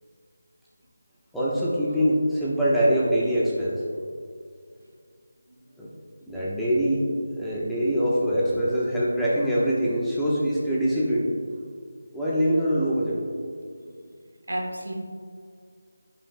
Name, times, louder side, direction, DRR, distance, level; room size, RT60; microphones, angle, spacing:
voice 1, 1.3-3.8 5.8-5.9 6.3-7.0 7.4-11.3 12.1-13.2, equal, ahead, -9 dB, 1.0 m, -23 dB
voice 2, 14.5-14.9, right 1 dB, 80° right, 1 dB, 1.5 m, -32 dB
15.5 x 5.8 x 2.2 m, 2.2 s
figure-of-eight pair, 165°, 0 cm